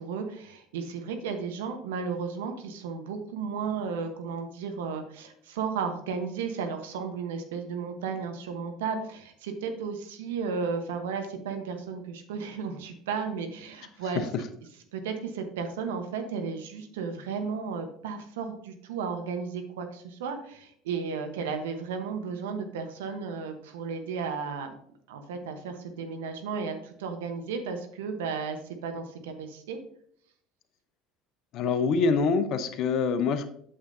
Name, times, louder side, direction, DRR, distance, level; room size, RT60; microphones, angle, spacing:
voice 1, 0.0-14.3 14.9-24.7 25.1-29.8, right 5 dB, 75° right, 6 dB, 1.1 m, -34 dB
voice 2, 31.5-33.5, left 4 dB, 55° left, 10 dB, 0.8 m, -25 dB
8.7 x 7.2 x 2.7 m, 0.65 s
hypercardioid pair, 70°, 0 cm